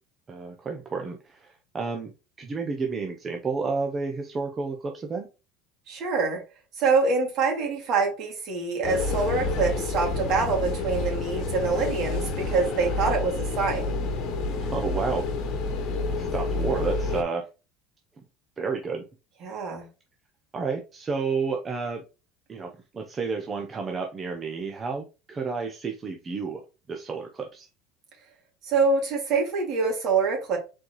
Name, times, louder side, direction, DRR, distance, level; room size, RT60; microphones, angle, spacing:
voice 1, 0.3-2.1 2.4-5.3 11.6-11.7 14.6-15.3 16.1-17.5 18.6-19.1 20.5-22.0 22.5-26.6 26.9-27.7, right 4 dB, 20° right, 0.7 m, -31 dB
voice 2, 5.9-6.4 6.8-14.0 19.4-19.9 28.6-30.6, right 4 dB, 45° right, 2.4 m, -25 dB
sound 1, 8.8-17.2, left 3 dB, 45° left, 1.2 m, -29 dB
4.3 x 4.0 x 3.1 m
cardioid pair, 155°, 0 cm